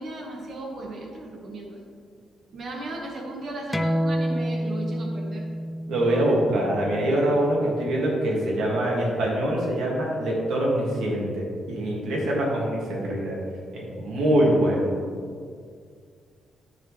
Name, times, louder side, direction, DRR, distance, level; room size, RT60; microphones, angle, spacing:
voice 1, 0.0-1.8 2.5-5.5, right 2 dB, 40° right, 0 dB, 1.4 m, -36 dB
sound 1, 3.7-8.9, equal, 5° left, 0.3 m, -30 dB
voice 2, 5.9-13.4 13.7-14.9, right 1 dB, 80° right, -3 dB, 2.1 m, -24 dB
13.5 x 4.8 x 3.3 m, 2.1 s
cardioid pair, 165°, 0 cm